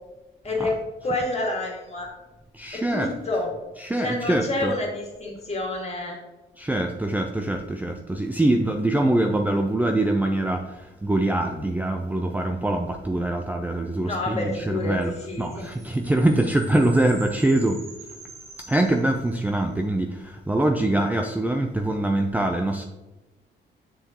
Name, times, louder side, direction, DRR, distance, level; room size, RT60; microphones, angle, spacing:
voice 1, 0.4-0.8 1.0-2.1 2.7-3.5 4.0-6.2 14.0-15.7, left 2 dB, 30° left, -1 dB, 2.1 m, -28 dB
voice 2, 2.5-3.1 3.8-4.7 6.6-15.1 15.4-17.9 18.7-22.8, right 1 dB, 10° right, 4 dB, 0.5 m, -24 dB
sound 1, 15.0-19.6, right 4 dB, 85° right, 1.6 m, -46 dB
6.9 x 5.9 x 3.0 m, 1.1 s
cardioid pair, 90°, 20 cm